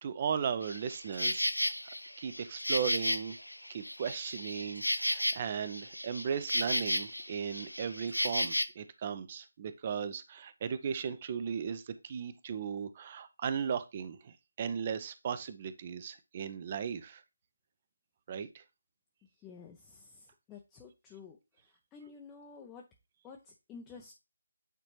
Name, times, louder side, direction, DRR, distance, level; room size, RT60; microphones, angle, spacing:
voice 1, 0.0-1.7 2.2-3.4 3.7-17.2 18.3-18.6, right 7 dB, 30° right, 12 dB, 0.7 m, -36 dB
Insect, 0.6-8.6, left 1 dB, 85° left, 0.7 m, -34 dB
voice 2, 19.2-22.9 23.2-24.2, left 5 dB, 10° left, 0 dB, 0.7 m, -52 dB
9.1 x 4.2 x 3.1 m, 0.25 s
figure-of-eight pair, 155°, 0 cm